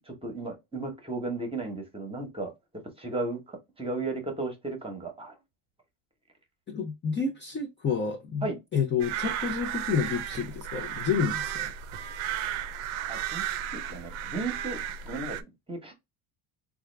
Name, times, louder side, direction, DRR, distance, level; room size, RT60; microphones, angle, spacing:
voice 1, 0.1-2.5 3.0-5.4 8.4-8.6 13.1-13.5 13.7-15.9, right 3 dB, 10° right, 1.0 m, -35 dB
voice 2, 6.7-8.5 8.7-11.7, left 6 dB, 25° left, 0.5 m, -29 dB
sound 1, 9.0-15.4, right 10 dB, 70° right, 0.6 m, -34 dB
3.5 x 2.4 x 3.2 m
cardioid pair, 135°, 50 cm